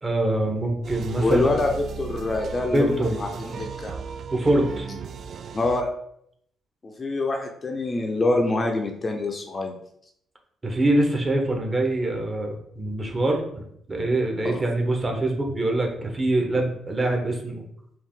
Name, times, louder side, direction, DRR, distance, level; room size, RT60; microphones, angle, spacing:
voice 1, 0.0-1.4 2.7-3.6 4.3-4.9 10.6-13.6 13.9-17.7, right 1 dB, 25° right, 2 dB, 1.0 m, -24 dB
sound 1, 0.8-5.8, right 6 dB, 60° right, 0.3 m, -36 dB
voice 2, 1.2-3.9 4.9-5.0 5.5-5.9 6.8-9.7 14.4-14.6, left 2 dB, 30° left, 3 dB, 0.6 m, -25 dB
4.6 x 2.6 x 3.7 m, 0.72 s
cardioid pair, 90°, 0 cm